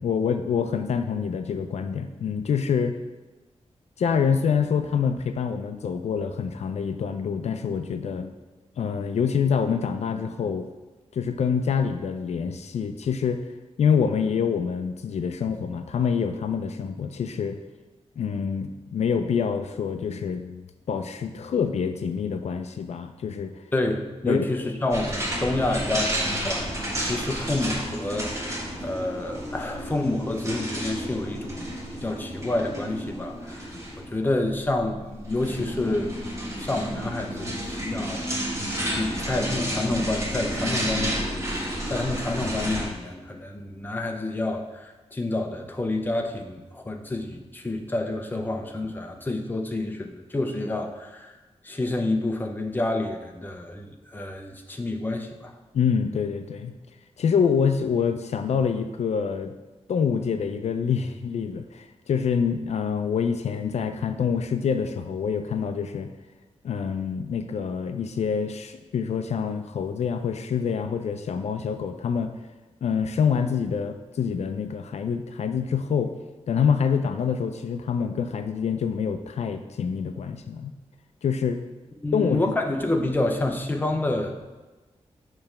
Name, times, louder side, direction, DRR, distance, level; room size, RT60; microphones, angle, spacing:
voice 1, 0.0-3.0 4.0-8.3 8.8-10.7 11.1-13.5 13.8-17.6 18.2-23.5 24.3-24.5 27.0-27.1 36.6-36.7 55.7-56.7 57.2-59.5 59.9-66.1 66.6-72.4 72.8-76.1 76.5-80.7 81.2-81.6 82.1-82.5, left 6 dB, 75° left, 8 dB, 0.4 m, -26 dB
voice 2, 23.7-28.6 28.8-36.1 36.6-38.3 38.9-41.2 41.6-51.3 51.6-55.5 82.0-84.4, left 2 dB, 15° left, 3 dB, 0.6 m, -28 dB
sound 1, 24.9-42.9, equal, 25° right, 1.3 m, -31 dB
6.8 x 3.2 x 5.7 m, 1.2 s
wide cardioid pair, 145°, 11 cm